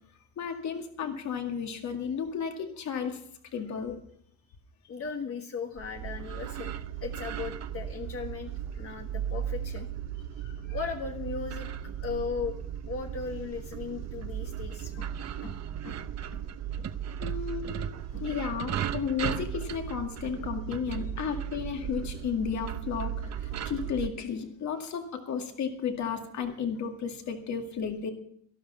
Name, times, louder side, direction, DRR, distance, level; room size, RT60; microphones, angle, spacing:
voice 1, 0.4-3.2 3.5-4.0 8.8-9.0 10.4-10.8 14.9-15.0 17.2-28.1, left 7 dB, 70° left, 4 dB, 2.2 m, -33 dB
voice 2, 4.9-6.7 7.0-9.9 10.7-11.7 12.0-12.6 12.8-15.1 15.4-15.6 15.8-16.0 16.3-16.4 16.8-16.9 17.2-17.4 17.7-17.8 18.1-18.2 21.3-21.4 23.5-23.6, left 5 dB, 50° left, 3 dB, 1.4 m, -37 dB
sound 1, 5.8-24.1, right 9 dB, 60° right, 0.8 m, -36 dB
12.5 x 12.0 x 5.6 m, 0.64 s
cardioid pair, 90°, 30 cm